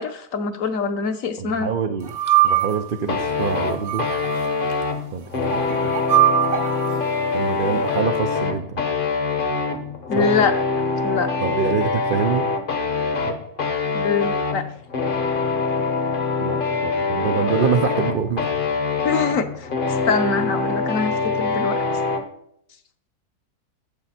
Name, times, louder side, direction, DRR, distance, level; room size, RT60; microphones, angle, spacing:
voice 1, 0.0-1.7 10.1-10.5 11.0-11.3 13.9-14.7 19.0-19.7 20.1-21.8, left 5 dB, 60° left, 8 dB, 1.1 m, -23 dB
voice 2, 1.4-2.1 2.4-4.1 5.1-5.9 7.3-8.8 10.1-10.3 11.4-12.5 13.3-13.4 16.4-18.5, right 6 dB, 90° right, 8 dB, 0.4 m, -25 dB
sound 1, 2.1-3.0 3.7-4.5 5.5-7.0, right 13 dB, 65° right, 1.3 m, -21 dB
sound 2, 3.1-22.3, left 4 dB, 40° left, 0.9 m, -24 dB
12.0 x 7.9 x 4.2 m, 0.71 s
omnidirectional pair, 1.7 m